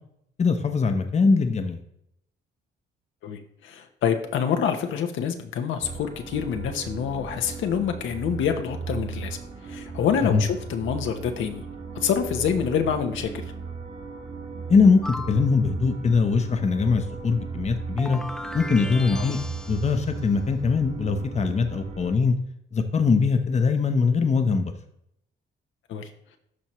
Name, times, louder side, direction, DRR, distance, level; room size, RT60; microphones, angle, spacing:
voice 1, 0.4-1.8 10.2-10.4 14.7-18.2 18.5-19.4 19.7-22.4 22.7-24.7, left 4 dB, 35° left, 7 dB, 0.9 m, -22 dB
voice 2, 3.2-9.4 9.6-11.6 11.9-13.4 19.1-19.3 25.9-26.1, left 7 dB, 80° left, 6 dB, 0.9 m, -27 dB
sound 1, 5.8-22.1, right 5 dB, 40° right, 1.7 m, -37 dB
sound 2, 15.0-15.5 18.0-20.1, left 1 dB, 5° left, 0.4 m, -37 dB
13.0 x 4.3 x 3.1 m, 0.76 s
cardioid pair, 90°, 20 cm